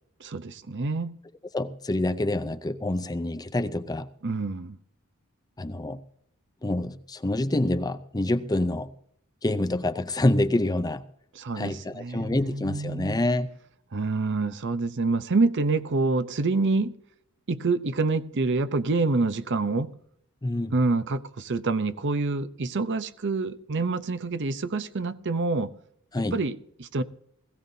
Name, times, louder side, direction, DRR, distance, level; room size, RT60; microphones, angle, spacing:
voice 1, 0.2-1.1 4.2-4.8 11.4-13.2 13.9-16.9 17.5-19.9 20.7-25.7 26.3-27.0, right 3 dB, 55° right, 0.7 m, -27 dB
voice 2, 1.5-4.1 5.6-6.0 6.6-8.9 9.4-11.0 11.6-13.5 20.4-20.7 26.1-26.4, left 1 dB, 15° left, 0.5 m, -27 dB
20.5 x 15.5 x 2.7 m
head